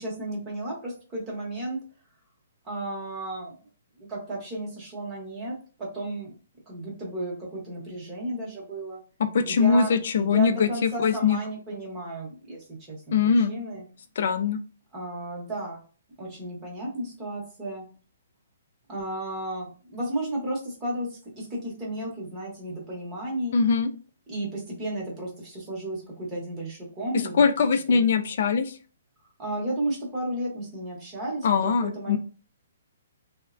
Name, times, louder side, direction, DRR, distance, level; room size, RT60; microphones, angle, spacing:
voice 1, 0.0-1.8 2.6-3.6 4.1-6.3 6.7-9.0 9.5-13.8 14.9-15.8 16.2-17.9 18.9-23.6 24.3-27.4 27.9-28.1 29.4-32.2, right 1 dB, 15° right, -3 dB, 0.9 m, -33 dB
voice 2, 9.2-11.4 13.1-13.5 14.2-14.6 23.5-23.9 27.4-28.7 31.4-32.2, left 5 dB, 45° left, 8 dB, 0.4 m, -22 dB
3.3 x 2.1 x 2.5 m, 0.37 s
hypercardioid pair, 175°, 0 cm